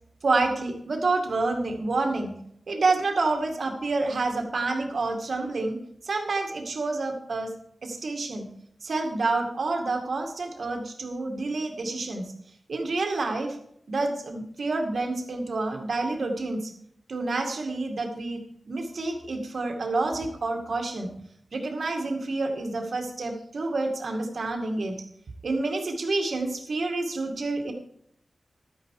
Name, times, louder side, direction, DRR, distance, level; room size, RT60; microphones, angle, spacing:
voice 1, 0.2-2.3 2.7-5.8 6.0-7.5 7.8-8.5 8.8-12.2 12.7-13.6 13.9-16.7 17.1-18.4 18.7-21.1 21.5-24.9 25.4-27.7, right 3 dB, 60° right, 3 dB, 2.3 m, -28 dB
12.5 x 9.5 x 4.9 m, 0.69 s
wide cardioid pair, 120°, 0 cm